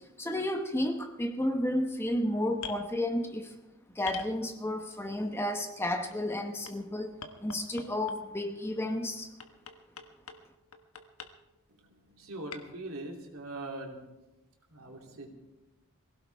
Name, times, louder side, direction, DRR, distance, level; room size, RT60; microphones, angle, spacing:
voice 1, 0.2-3.5 4.0-7.1 7.4-9.3, left 1 dB, 10° left, 1.0 m, -32 dB
sound 1, 2.5-2.8 4.0-4.8 5.8-6.7 7.2-8.3 9.4-10.4 10.7-11.3 12.5-12.6, left 6 dB, 75° left, 1.3 m, -43 dB
voice 2, 12.1-14.0 14.7-15.3, right 2 dB, 75° right, 3.0 m, -41 dB
23.0 x 16.5 x 3.5 m
head